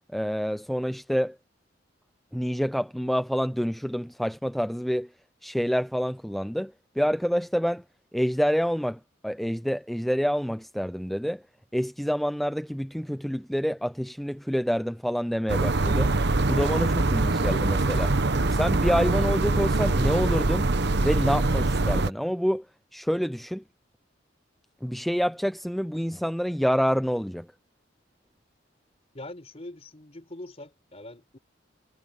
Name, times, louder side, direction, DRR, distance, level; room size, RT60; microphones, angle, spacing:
voice 1, 0.1-1.4 2.3-5.1 5.4-7.8 8.1-11.4 11.7-16.1 16.5-18.1 18.5-20.7 21.0-22.7 22.9-23.6 24.8-27.5, equal, ahead, 0.5 m, -27 dB
sound 1, 15.5-22.1, right 2 dB, 65° right, 1.1 m, -23 dB
voice 2, 29.1-31.4, left 1 dB, 35° left, 4.4 m, -43 dB
head